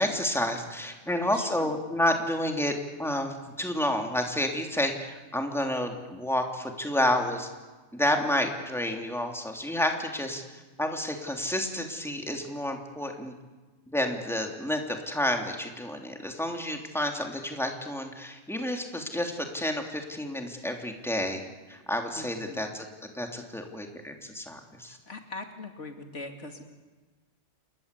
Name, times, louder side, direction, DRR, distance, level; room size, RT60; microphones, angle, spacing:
voice 1, 0.0-2.7 3.0-7.5 7.9-10.4 10.8-13.3 13.9-21.4 21.7-22.9 23.1-25.0, left 1 dB, ahead, 3 dB, 3.2 m, -30 dB
voice 2, 1.2-1.7 22.2-22.7 24.9-26.6, left 2 dB, 75° left, 5 dB, 2.9 m, -42 dB
29.0 x 21.0 x 8.5 m, 1.3 s
omnidirectional pair, 1.2 m